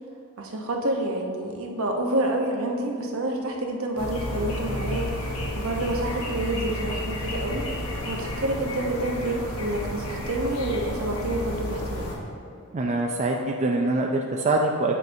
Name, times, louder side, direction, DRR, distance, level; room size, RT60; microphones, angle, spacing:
voice 1, 0.4-12.1, right 1 dB, 65° right, 1 dB, 0.9 m, -28 dB
sound 1, 4.0-12.2, left 1 dB, 70° left, 1.0 m, -32 dB
voice 2, 12.7-15.0, right 2 dB, 30° right, 0 dB, 0.4 m, -24 dB
8.4 x 6.4 x 2.7 m, 2.7 s
head